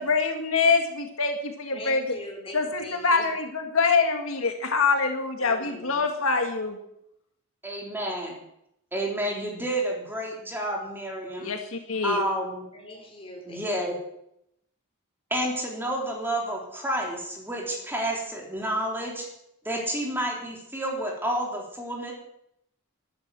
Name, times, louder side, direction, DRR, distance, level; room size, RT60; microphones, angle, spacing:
voice 1, 0.0-2.0 2.5-6.8 11.4-12.2, left 4 dB, 75° left, 1.9 m, -25 dB
voice 2, 1.7-3.3 5.4-6.0 12.7-13.8, left 1 dB, 25° left, 4.6 m, -42 dB
voice 3, 7.6-8.4 8.9-11.5 12.0-12.7 13.5-13.9 15.3-19.2 19.6-22.1, right 1 dB, 10° right, 3.5 m, -30 dB
13.0 x 10.5 x 7.6 m
head